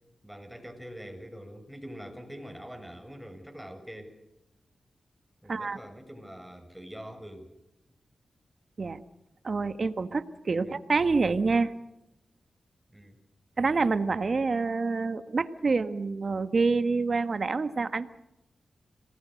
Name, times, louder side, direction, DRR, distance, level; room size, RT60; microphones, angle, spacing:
voice 1, 0.2-4.2 5.4-7.5 10.6-10.7 12.9-13.2, equal, 5° right, 5 dB, 6.9 m, -44 dB
voice 2, 9.4-11.7 13.6-18.1, right 4 dB, 55° right, 11 dB, 1.6 m, -27 dB
27.5 x 20.0 x 6.6 m, 0.89 s
cardioid pair, 60°, 0 cm